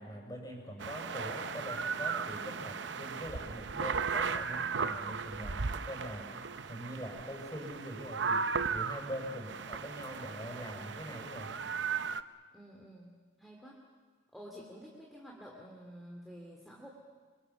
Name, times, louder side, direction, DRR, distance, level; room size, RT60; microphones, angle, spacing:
voice 1, 0.0-6.3 6.7-11.5, equal, 20° left, 1 dB, 6.1 m, -43 dB
sound 1, 0.8-12.2, right 5 dB, 75° right, 0.7 m, -36 dB
voice 2, 12.5-13.1 13.4-13.9 14.3-16.9, equal, ahead, -2 dB, 2.6 m, -50 dB
26.5 x 25.5 x 7.1 m, 1.5 s
head